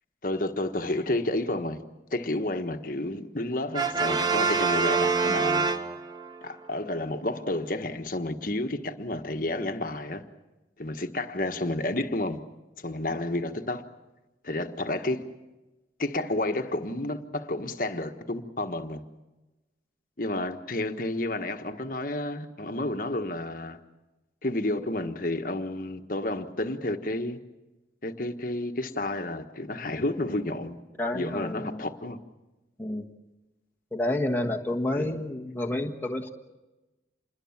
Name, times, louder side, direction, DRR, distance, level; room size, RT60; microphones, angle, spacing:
voice 1, 0.2-1.8 2.1-5.7 6.4-10.2 10.8-12.4 12.8-13.9 14.4-15.2 16.0-19.0 20.2-23.8 24.4-27.4 28.0-30.8 31.1-32.2 35.0-35.2, left 1 dB, 45° left, 1.4 m, -31 dB
Brass instrument, 3.7-6.4, right 4 dB, 20° right, 0.9 m, -25 dB
voice 2, 31.0-31.8 32.8-33.1 33.9-36.3, left 1 dB, 10° left, 1.5 m, -29 dB
27.5 x 21.5 x 7.3 m
head